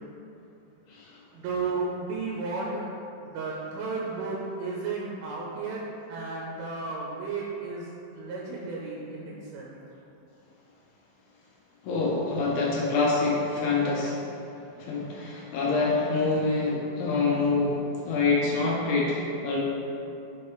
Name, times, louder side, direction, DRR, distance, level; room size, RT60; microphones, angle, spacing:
voice 1, 1.3-2.9 3.2-7.9 8.1-9.8, right 3 dB, 90° right, -4 dB, 3.2 m, -33 dB
voice 2, 11.8-14.2 14.8-19.6, left 3 dB, 90° left, -5 dB, 2.2 m, -26 dB
6.9 x 3.0 x 4.6 m, 2.8 s
omnidirectional pair, 5.5 m